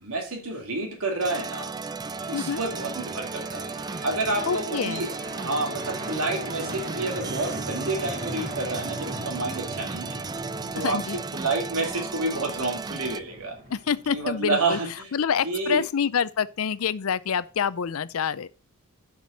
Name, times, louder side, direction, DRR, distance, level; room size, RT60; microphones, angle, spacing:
voice 1, 0.0-1.8 2.3-3.7 4.0-10.2 10.7-13.6 14.1-15.1 15.4-15.8, right 2 dB, 75° right, 2.5 m, -29 dB
sound 1, 1.2-13.2, right 4 dB, 20° right, 0.3 m, -35 dB
sound 2, 1.5-14.4, right 1 dB, 45° right, 1.9 m, -39 dB
voice 2, 4.5-5.1 10.8-11.2 13.7-14.8 15.1-18.5, left 7 dB, 70° left, 0.5 m, -27 dB
7.4 x 6.1 x 5.5 m
head